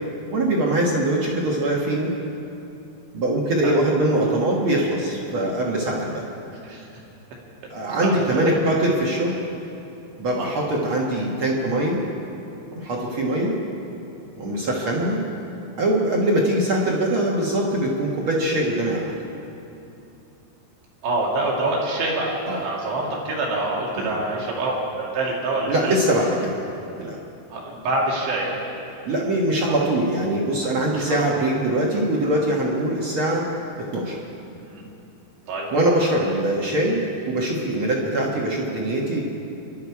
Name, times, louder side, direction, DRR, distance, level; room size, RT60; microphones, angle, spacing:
voice 1, 0.3-2.1 3.1-6.2 7.7-9.4 10.2-12.0 12.7-13.6 14.4-15.2 15.8-19.1 22.5-22.6 24.0-24.1 25.7-26.6 27.0-27.2 29.0-33.5 33.8-34.2 35.7-39.2, right 1 dB, 60° right, -2 dB, 1.3 m, -22 dB
voice 2, 8.0-8.6 10.4-10.5 14.5-14.7 21.0-26.0 27.5-28.6 30.9-31.3 34.6-34.8 35.5-35.7, right 2 dB, 80° right, -3 dB, 4.7 m, -26 dB
25.5 x 11.5 x 4.8 m, 2.8 s
omnidirectional pair, 4.9 m